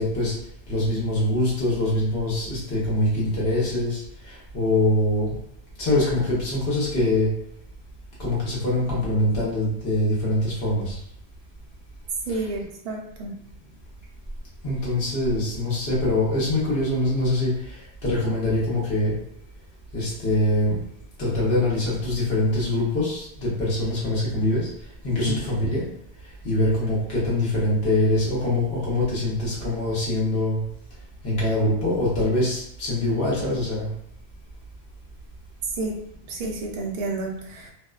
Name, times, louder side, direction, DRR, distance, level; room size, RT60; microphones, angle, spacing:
voice 1, 0.0-5.4 5.8-7.3 8.2-11.0 12.3-12.5 14.6-19.2 19.9-20.8 21.2-25.9 26.2-30.6 31.2-33.9, left 1 dB, 70° left, -6 dB, 1.0 m, -24 dB
voice 2, 12.3-13.3 25.3-25.4 35.8-35.9 36.3-37.7, right 3 dB, 55° right, -1 dB, 0.5 m, -30 dB
2.5 x 2.1 x 2.3 m, 0.71 s
omnidirectional pair, 1.1 m